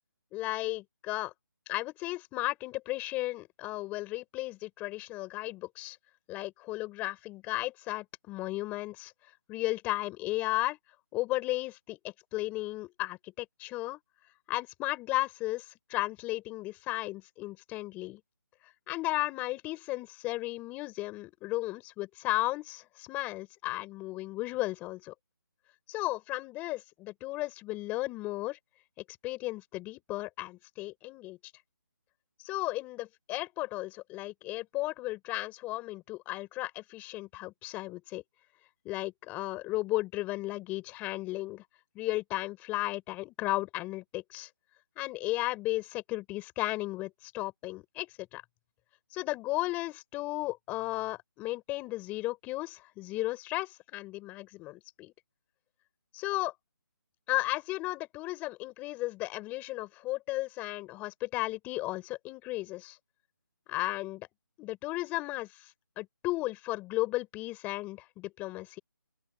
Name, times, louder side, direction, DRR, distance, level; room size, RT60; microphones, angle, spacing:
voice 1, 0.3-1.3 1.7-6.0 6.3-9.1 9.5-10.8 11.1-12.0 12.3-14.0 14.5-18.2 18.9-25.1 25.9-28.6 29.2-31.4 32.4-38.2 38.8-41.6 41.9-44.5 45.0-48.4 49.1-55.1 56.1-56.5 57.3-63.0 63.7-64.3 64.6-65.7 66.0-68.8, left 19 dB, 15° left, 5.8 m, -34 dB
open air
figure-of-eight pair, 160°, 11 cm